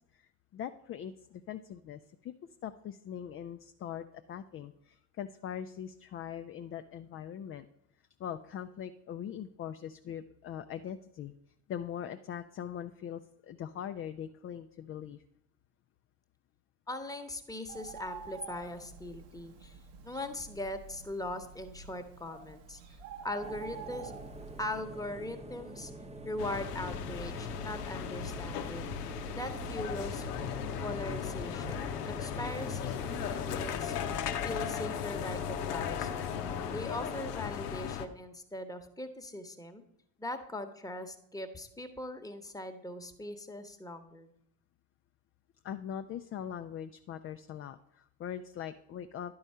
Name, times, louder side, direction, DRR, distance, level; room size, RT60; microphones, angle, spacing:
voice 1, 0.1-2.4 2.6-7.7 8.2-11.3 11.7-15.2 45.6-49.3, left 9 dB, 30° left, 8 dB, 0.4 m, -41 dB
voice 2, 16.9-19.8 20.0-22.8 23.2-24.1 24.6-25.9 26.2-28.9 29.3-30.3 30.8-33.9 34.4-36.4 36.7-39.8 40.2-44.3, left 1 dB, 10° left, 6 dB, 1.0 m, -40 dB
Bird, 17.7-24.8, right 6 dB, 65° right, 1.1 m, -48 dB
sound 1, 23.4-37.3, right 1 dB, 15° right, 0.8 m, -46 dB
sound 2, 26.4-38.1, left 8 dB, 85° left, 0.7 m, -36 dB
11.0 x 4.8 x 5.4 m, 0.76 s
hypercardioid pair, 55°, 46 cm